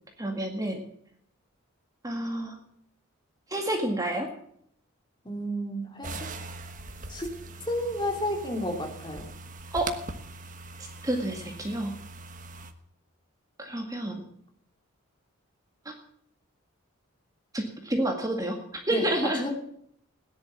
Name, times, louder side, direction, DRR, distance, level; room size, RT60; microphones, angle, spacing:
voice 1, 0.2-0.8 2.0-2.5 3.5-4.3 9.7-9.9 11.0-11.9 13.6-14.2 15.9-16.0 17.5-18.6 18.9-19.4, right 1 dB, 15° right, 3 dB, 1.9 m, -29 dB
voice 2, 5.2-6.1 7.1-7.3 7.7-9.3 18.9-19.5, equal, 20° left, 2 dB, 3.0 m, -31 dB
sound 1, 6.0-12.7, right 3 dB, 35° right, 1.3 m, -41 dB
17.5 x 11.0 x 7.2 m, 0.68 s
head